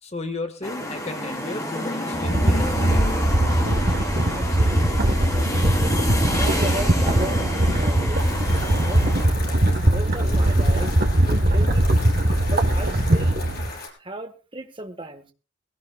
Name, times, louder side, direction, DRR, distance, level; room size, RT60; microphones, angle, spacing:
voice 1, 0.0-3.0, left 2 dB, 35° left, 7 dB, 1.8 m, -34 dB
sound 1, 0.6-9.2, left 1 dB, 15° left, 3.5 m, -28 dB
sound 2, 2.1-13.7, right 1 dB, 50° right, 1.4 m, -20 dB
voice 2, 4.3-5.1 5.8-6.1 6.4-8.3 8.8-9.2 9.9-10.9 11.3-12.1 12.5-13.4 14.0-15.3, right 1 dB, 25° right, 7 dB, 1.5 m, -35 dB
sound 3, 8.2-13.9, left 3 dB, 50° left, 4.6 m, -37 dB
20.5 x 17.0 x 2.4 m, 0.32 s
head